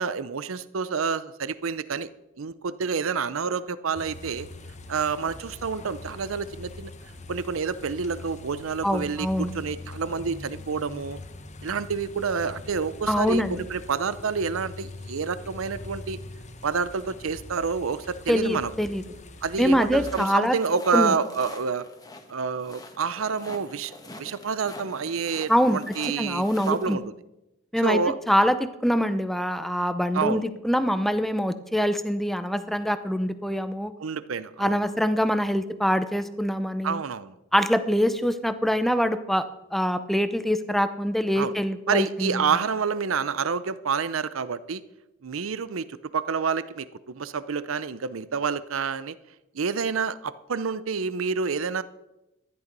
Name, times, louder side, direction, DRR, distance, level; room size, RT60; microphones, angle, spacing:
voice 1, 0.0-2.1 2.4-4.5 4.9-6.9 7.3-11.2 11.6-16.2 16.6-18.7 19.4-21.8 22.3-27.0 27.8-28.2 30.1-30.5 34.0-34.9 36.8-37.3 41.4-41.5 41.9-44.8 45.2-49.1 49.5-51.8, right 5 dB, 75° right, 16 dB, 0.6 m, -28 dB
sound 1, 3.9-20.1, left 2 dB, 35° left, 1.1 m, -42 dB
voice 2, 8.8-9.5 13.1-13.6 18.3-19.0 19.6-20.6 20.9-21.1 25.5-27.0 27.7-28.0 28.3-33.9 34.6-37.0 37.5-39.4 39.7-42.4, equal, ahead, 11 dB, 0.7 m, -24 dB
sound 2, 20.0-27.0, left 2 dB, 20° left, 1.4 m, -45 dB
13.5 x 11.0 x 5.3 m, 0.94 s
head